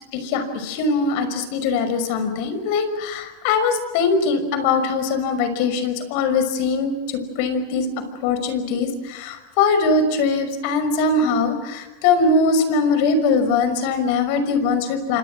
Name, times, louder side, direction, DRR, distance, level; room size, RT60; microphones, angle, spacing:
voice 1, 0.1-7.9 8.2-15.2, left 4 dB, 60° left, 9 dB, 5.9 m, -21 dB
29.0 x 25.5 x 6.3 m, 1.1 s
supercardioid pair, 135°, 0 cm